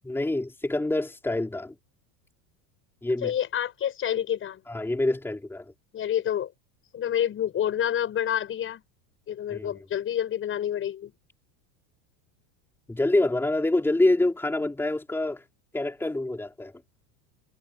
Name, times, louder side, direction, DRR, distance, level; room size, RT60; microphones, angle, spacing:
voice 1, 0.0-1.7 3.0-3.3 4.7-5.6 9.5-9.7 12.9-15.4 15.7-16.7, left 2 dB, 5° left, 4.6 m, -26 dB
voice 2, 3.2-4.6 5.9-6.5 6.9-8.8 9.3-11.1, left 10 dB, 25° left, 5.9 m, -28 dB
supercardioid pair, 160°, 46 cm